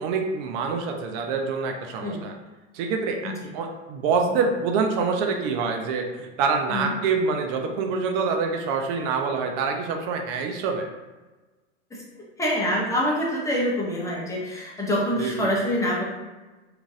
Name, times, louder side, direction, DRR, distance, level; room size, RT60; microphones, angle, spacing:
voice 1, 0.0-2.3 2.7-10.9 15.2-15.5, right 5 dB, 40° right, 3 dB, 0.4 m, -26 dB
voice 2, 11.9-16.0, equal, 10° left, -5 dB, 0.7 m, -26 dB
2.9 x 2.5 x 2.7 m, 1.2 s
hypercardioid pair, 110°, 37 cm